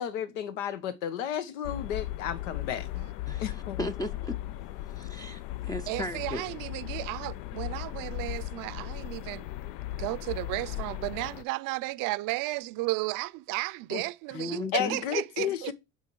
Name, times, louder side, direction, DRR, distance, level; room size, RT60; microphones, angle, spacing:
voice 1, 0.0-3.0 3.4-3.9 13.9-14.0 14.7-15.7, left 9 dB, 85° left, 1.3 m, -33 dB
sound 1, 1.6-11.4, left 14 dB, 70° left, 0.6 m, -37 dB
voice 2, 3.3-4.3 5.0-6.4 14.3-15.0, left 1 dB, 10° left, 0.6 m, -36 dB
voice 3, 5.9-9.5 9.9-15.7, right 21 dB, 60° right, 0.6 m, -34 dB
8.2 x 4.6 x 4.7 m
supercardioid pair, 105°, 37 cm